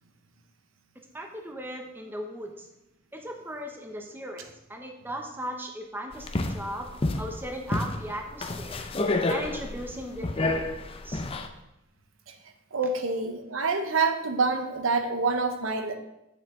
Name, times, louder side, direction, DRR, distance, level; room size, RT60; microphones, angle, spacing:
voice 1, 1.1-2.7 3.1-6.3 6.5-6.9 7.2-8.8 9.3-10.6 11.0-11.2, equal, 10° right, 3 dB, 0.8 m, -37 dB
sound 1, 6.1-11.5, left 2 dB, 25° left, 0.5 m, -30 dB
voice 2, 12.7-15.9, right 4 dB, 75° right, 7 dB, 0.8 m, -26 dB
8.2 x 6.8 x 3.7 m, 0.88 s
head